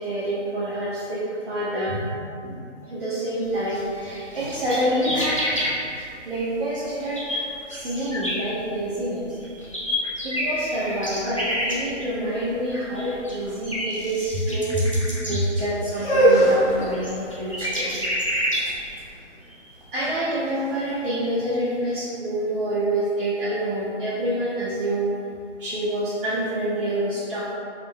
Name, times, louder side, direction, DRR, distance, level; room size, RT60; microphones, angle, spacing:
voice 1, 0.0-2.1 2.4-2.6 2.9-18.2 18.7-25.1 25.6-27.5, right 1 dB, 45° right, -9 dB, 0.7 m, -27 dB
sound 1, 3.7-3.8 4.0-5.7 6.4-6.5 6.8-9.1 9.4-19.1, equal, 30° left, 0.4 m, -29 dB
sound 2, 15.9-21.8, right 1 dB, 50° left, 1.3 m, -24 dB
4.0 x 3.6 x 2.2 m, 2.5 s
hypercardioid pair, 165°, 37 cm